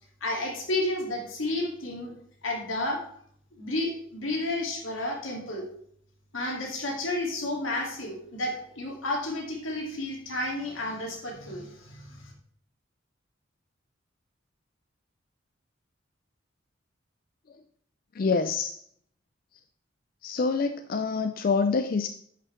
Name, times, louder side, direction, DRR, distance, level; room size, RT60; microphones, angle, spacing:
voice 1, 0.2-2.1 2.4-3.0 3.6-5.6 6.3-12.3, left 1 dB, 80° left, 1 dB, 2.2 m, -31 dB
voice 2, 18.1-18.8 20.2-22.1, left 4 dB, 45° left, 9 dB, 0.4 m, -26 dB
10.5 x 5.9 x 3.2 m, 0.65 s
head